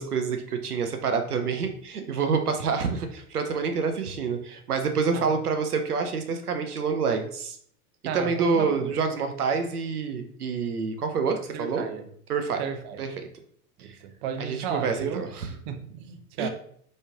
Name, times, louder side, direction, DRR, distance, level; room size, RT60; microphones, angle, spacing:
voice 1, 0.0-7.6 8.1-11.9 12.3-12.6 13.0-13.3 13.8-14.0 14.4-15.5 16.4-16.5, right 5 dB, 90° right, 6 dB, 0.6 m, -27 dB
voice 2, 8.1-8.9 11.5-12.0 12.6-13.0 13.8-16.5, right 7 dB, 45° right, 8 dB, 0.6 m, -34 dB
4.0 x 3.2 x 2.4 m, 0.62 s
figure-of-eight pair, 95°, 44 cm